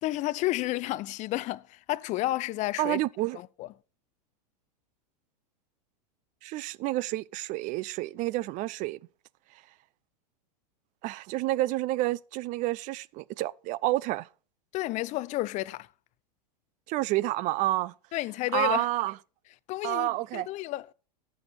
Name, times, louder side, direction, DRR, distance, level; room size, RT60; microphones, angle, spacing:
voice 1, 0.0-3.0 3.3-3.7 14.7-15.9 18.1-18.9 19.7-20.9, left 17 dB, 35° left, 0.5 m, -31 dB
voice 2, 2.8-3.4 6.4-9.0 11.0-14.3 16.9-17.9 18.5-19.1 19.8-20.5, right 17 dB, 35° right, 0.5 m, -29 dB
14.0 x 6.3 x 5.0 m
hypercardioid pair, 120°, 21 cm